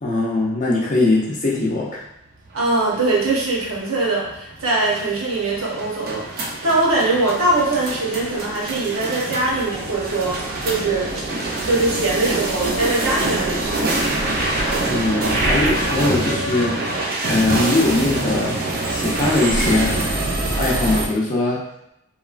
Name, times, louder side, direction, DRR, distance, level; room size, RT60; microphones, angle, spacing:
voice 1, 0.0-2.0 14.9-16.7 17.2-18.6 18.9-20.0 20.5-21.6, left 2 dB, 35° left, -4 dB, 0.5 m, -21 dB
sound 1, 2.5-21.1, right 2 dB, 40° right, 0.4 m, -25 dB
voice 2, 2.5-11.2 11.6-13.8, right 2 dB, 80° right, -5 dB, 0.9 m, -22 dB
3.0 x 2.3 x 2.4 m, 0.82 s
head